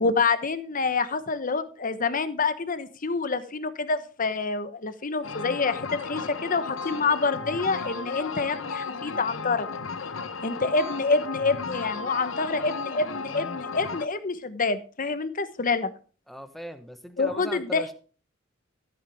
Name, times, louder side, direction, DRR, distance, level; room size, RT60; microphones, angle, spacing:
voice 1, 0.0-9.7 10.4-15.9 17.2-17.8, left 4 dB, 45° left, 12 dB, 1.1 m, -27 dB
sound 1, 5.2-14.1, left 4 dB, 75° left, 0.9 m, -35 dB
voice 2, 16.3-17.9, equal, ahead, 8 dB, 1.2 m, -39 dB
14.0 x 8.9 x 3.5 m, 0.38 s
head